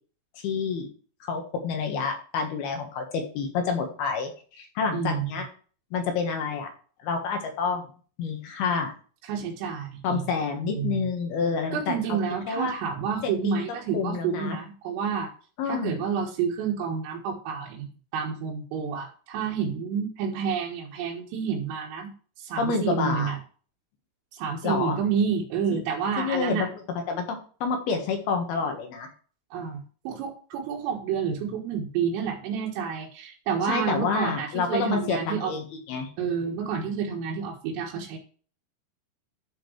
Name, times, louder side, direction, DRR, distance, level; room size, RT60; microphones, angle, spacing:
voice 1, 0.3-0.9 1.2-5.5 5.9-6.7 7.0-7.9 8.2-8.9 10.0-12.2 12.5-12.7 13.4-13.6 13.9-14.6 15.6-15.9 22.6-23.4 24.6-25.0 25.7-25.8 26.2-26.7 27.1-29.1 33.7-36.1, left 5 dB, 65° left, 4 dB, 2.9 m, -28 dB
voice 2, 4.9-5.3 9.3-10.3 10.8-11.1 11.7-15.3 15.7-17.9 18.1-22.1 22.4-23.4 24.3-26.7 29.5-35.5 36.2-38.2, right 6 dB, 85° right, -2 dB, 4.0 m, -29 dB
12.0 x 6.3 x 3.2 m, 0.40 s
omnidirectional pair, 5.8 m